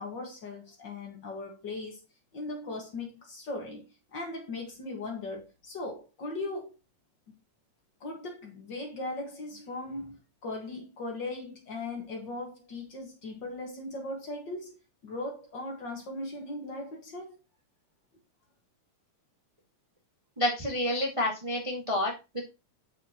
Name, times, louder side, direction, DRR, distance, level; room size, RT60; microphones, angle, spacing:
voice 1, 0.0-2.0 2.3-3.8 4.1-6.7 8.0-14.7 15.0-17.3, left 2 dB, 45° left, 2.0 m, -38 dB
voice 2, 20.4-22.1, left 1 dB, 15° right, 1.1 m, -28 dB
8.5 x 6.5 x 3.0 m
omnidirectional pair, 3.4 m